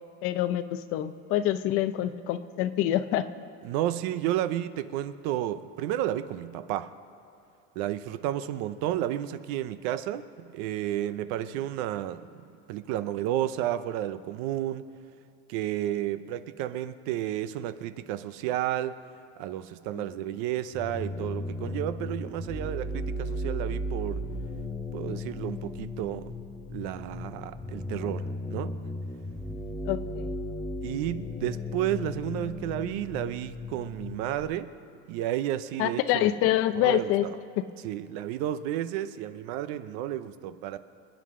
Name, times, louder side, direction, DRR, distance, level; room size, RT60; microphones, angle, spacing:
voice 1, 0.2-3.3 19.9-20.0 29.8-30.4 35.8-37.3 37.6-37.7, left 12 dB, 50° left, 12 dB, 0.6 m, -26 dB
voice 2, 3.6-6.9 7.8-12.2 12.7-14.8 15.5-18.9 19.4-24.2 24.9-26.3 26.7-28.7 30.8-34.7 35.1-36.2 36.8-37.3 37.8-40.8, right 12 dB, 60° right, 13 dB, 0.7 m, -32 dB
sound 1, 20.7-34.4, left 1 dB, 5° left, 0.5 m, -36 dB
27.5 x 9.7 x 3.7 m, 2.7 s
cardioid pair, 160°, 30 cm